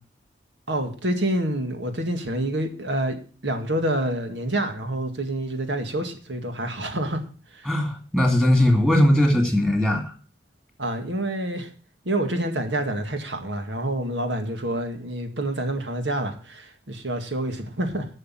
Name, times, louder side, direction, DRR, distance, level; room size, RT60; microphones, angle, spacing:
voice 1, 0.7-3.2 3.4-7.2 7.5-7.7 10.8-11.7 12.1-18.1, right 1 dB, 85° right, 6 dB, 2.0 m, -27 dB
voice 2, 7.7-10.1, left 1 dB, 10° right, 3 dB, 2.3 m, -19 dB
11.5 x 6.4 x 7.5 m, 0.39 s
head